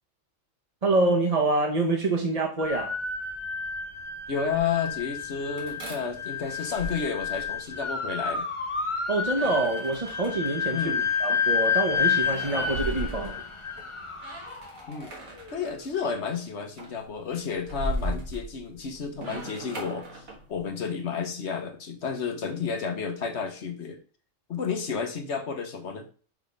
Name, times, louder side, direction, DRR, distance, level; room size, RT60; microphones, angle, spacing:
voice 1, 0.8-2.9 9.1-10.9 11.2-13.4, right 2 dB, 30° right, 0.9 m, -26 dB
sound 1, 2.6-15.6, left 5 dB, 30° left, 0.7 m, -30 dB
sound 2, 4.0-5.0 5.6-7.8 9.3-10.5 11.3-13.9 14.2-15.7 16.0-16.4 16.8-20.7, right 1 dB, 85° right, 1.9 m, -38 dB
voice 2, 4.3-8.5 10.7-11.1 14.9-15.1 15.5-20.2 20.5-24.0 24.5-26.0, left 6 dB, 60° left, 1.3 m, -31 dB
6.2 x 3.6 x 5.2 m
omnidirectional pair, 1.4 m